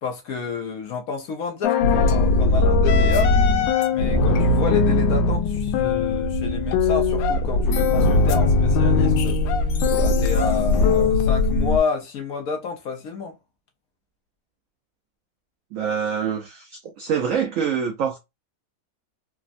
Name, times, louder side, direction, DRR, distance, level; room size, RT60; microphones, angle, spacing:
voice 1, 0.0-3.3 3.9-9.4 9.9-13.4, left 5 dB, 70° left, 0.9 m, -29 dB
sound 1, 1.6-11.8, left 3 dB, 90° left, 1.3 m, -19 dB
voice 2, 15.7-18.2, right 7 dB, 85° right, 0.7 m, -25 dB
3.4 x 2.0 x 2.4 m
omnidirectional pair, 2.0 m